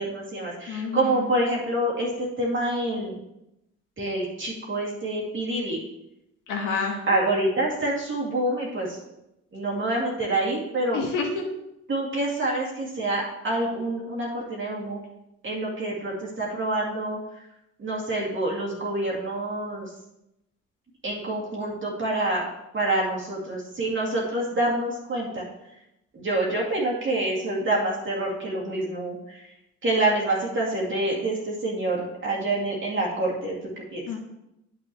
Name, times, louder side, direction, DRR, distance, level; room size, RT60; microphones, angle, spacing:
voice 1, 0.0-3.2 4.0-5.8 7.1-9.0 9.5-11.0 11.9-15.0 15.4-17.2 17.8-19.9 21.0-25.5 26.1-29.5 29.8-34.0, right 2 dB, 40° right, -4 dB, 2.4 m, -27 dB
voice 2, 0.7-1.1 6.5-7.0 10.9-11.4 34.1-34.2, left 5 dB, 85° left, -1 dB, 1.5 m, -28 dB
9.1 x 7.4 x 3.1 m, 0.85 s
cardioid pair, 90°, 30 cm